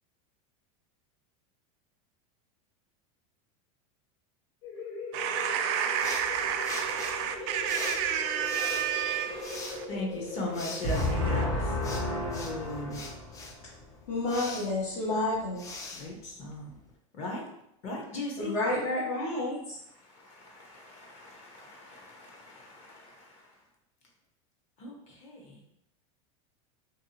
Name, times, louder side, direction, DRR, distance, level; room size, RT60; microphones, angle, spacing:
sound 1, 4.6-13.9, left 2 dB, 60° left, 1.4 m, -41 dB
voice 1, 5.1-9.9 10.8-11.4, right 9 dB, 55° right, 0.4 m, -31 dB
sound 2, 6.0-16.9, left 3 dB, 20° left, 0.3 m, -43 dB
voice 2, 9.9-13.0 15.9-16.7 17.1-17.4 17.8-18.5 19.9-23.5 24.8-25.6, left 2 dB, 40° left, 0.7 m, -39 dB
voice 3, 10.8-13.8 14.1-15.6 18.4-19.8, left 2 dB, 80° left, 1.1 m, -31 dB
2.6 x 2.4 x 2.8 m
supercardioid pair, 135°, 18 cm